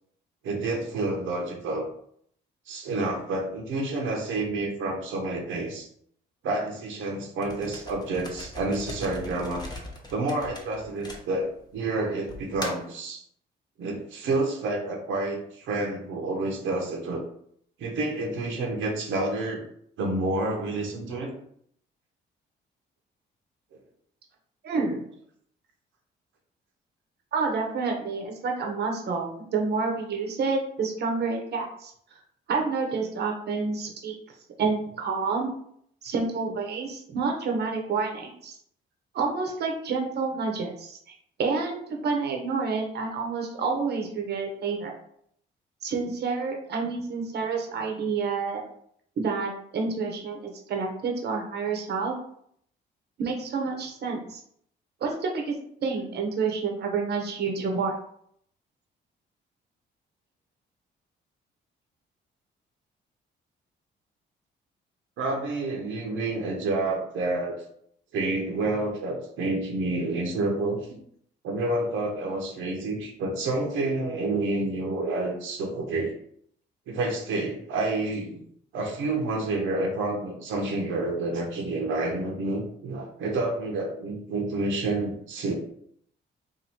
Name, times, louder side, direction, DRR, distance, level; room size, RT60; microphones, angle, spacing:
voice 1, 0.4-1.9 2.7-5.9 6.4-9.6 10.1-13.2 13.8-17.2 17.8-19.7 20.0-21.4 65.2-67.6 68.1-70.8 71.4-76.1 76.9-78.4 78.7-85.5, right 2 dB, 80° right, 1 dB, 0.8 m, -29 dB
sound 1, 7.4-11.7 12.3-13.0, left 1 dB, 20° left, 0.8 m, -40 dB
voice 2, 24.6-25.0 27.3-32.2 32.5-34.2 34.6-35.5 36.0-38.6 39.1-41.0 41.4-44.9 45.8-48.6 49.2-52.1 53.2-54.4 55.0-55.5 55.8-58.0, right 4 dB, 55° right, 2 dB, 0.8 m, -29 dB
2.7 x 2.6 x 4.3 m, 0.66 s
cardioid pair, 90°, 20 cm